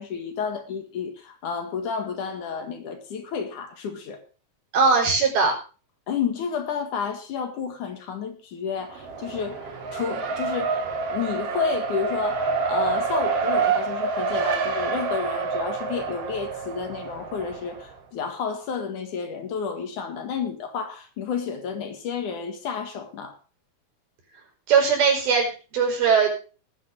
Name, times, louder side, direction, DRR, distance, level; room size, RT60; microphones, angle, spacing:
voice 1, 0.0-4.2 6.1-10.8 11.1-23.4, left 6 dB, 60° left, 6 dB, 3.0 m, -31 dB
voice 2, 4.7-5.5 24.7-26.3, right 5 dB, 75° right, 1 dB, 6.7 m, -20 dB
Race car auto racing, 8.8-17.9, right 5 dB, 45° right, 2.4 m, -27 dB
19.5 x 9.3 x 3.7 m, 0.36 s
omnidirectional pair, 4.3 m